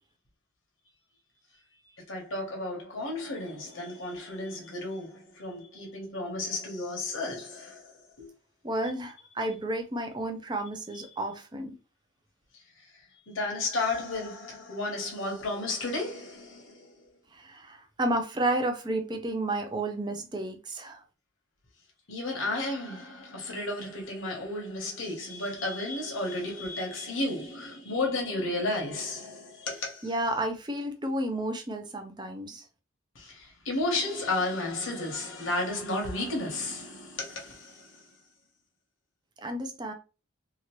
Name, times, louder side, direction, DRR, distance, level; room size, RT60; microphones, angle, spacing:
voice 1, 2.1-8.3 12.5-17.1 22.1-30.1 33.1-38.2, left 2 dB, 65° left, 1.1 m, -33 dB
voice 2, 8.6-11.8 17.3-21.0 30.0-32.7 39.4-39.9, right 1 dB, 20° right, 0.5 m, -31 dB
2.9 x 2.5 x 2.9 m
head